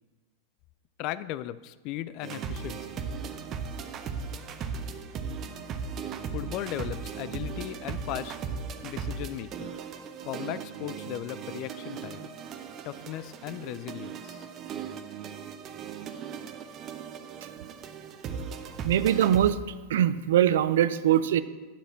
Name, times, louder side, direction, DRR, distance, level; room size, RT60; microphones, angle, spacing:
voice 1, 1.0-3.0 6.3-8.4 8.8-9.8 10.2-12.3 12.8-14.5, left 13 dB, 40° left, 16 dB, 0.4 m, -37 dB
sound 1, 2.2-19.5, right 6 dB, 30° right, 0.8 m, -37 dB
voice 2, 18.8-19.6 19.9-21.4, right 11 dB, 60° right, 14 dB, 0.4 m, -22 dB
8.9 x 4.9 x 7.5 m, 1.3 s
figure-of-eight pair, 90°, 0 cm